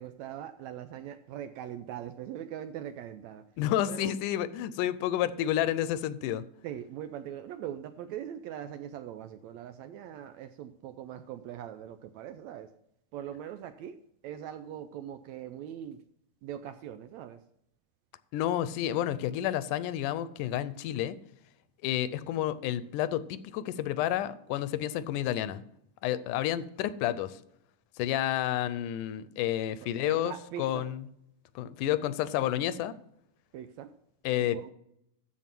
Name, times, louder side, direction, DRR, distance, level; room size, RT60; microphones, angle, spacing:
voice 1, 0.0-3.5 3.9-4.1 6.6-12.7 13.1-16.0 16.4-17.4 29.8-30.8 33.5-33.9 34.4-34.7, right 10 dB, 80° right, 10 dB, 1.7 m, -41 dB
voice 2, 3.6-6.4 18.3-21.2 21.8-25.6 26.0-27.4 28.0-30.3 30.6-31.0 31.6-32.9 34.3-34.7, left 12 dB, 80° left, 15 dB, 2.1 m, -30 dB
14.0 x 4.8 x 5.9 m, 0.76 s
omnidirectional pair, 3.7 m